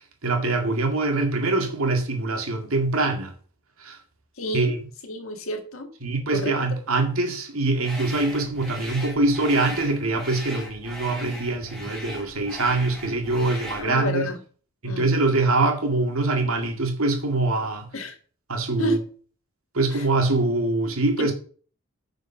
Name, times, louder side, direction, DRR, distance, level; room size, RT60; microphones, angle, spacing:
voice 1, 0.2-3.3 3.8-4.0 4.5-4.8 6.0-14.3 14.8-17.9 18.5-19.0 19.7-21.3, right 2 dB, 80° right, 2.1 m, -24 dB
voice 2, 4.4-4.8 5.0-5.9 6.3-6.5 13.8-14.4 14.8-15.1 17.9-18.2 18.8-19.0 19.9-20.1 21.2-21.3, left 2 dB, 75° left, 1.8 m, -30 dB
sound 1, 7.8-13.9, equal, 5° left, 2.8 m, -38 dB
9.9 x 5.1 x 5.9 m
head